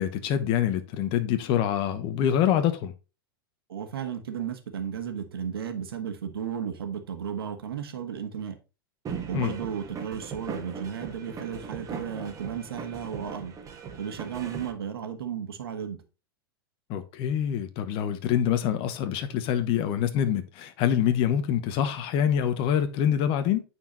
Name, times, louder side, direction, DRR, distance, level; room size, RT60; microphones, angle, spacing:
voice 1, 0.0-2.9 9.3-9.5 16.9-23.6, left 9 dB, 45° left, 1.1 m, -25 dB
voice 2, 3.7-8.6 9.3-13.5 14.0-16.0, right 8 dB, 80° right, 1.7 m, -34 dB
sound 1, 9.0-14.7, right 6 dB, 25° right, 1.7 m, -39 dB
9.1 x 4.6 x 4.0 m
hypercardioid pair, 100°, 12 cm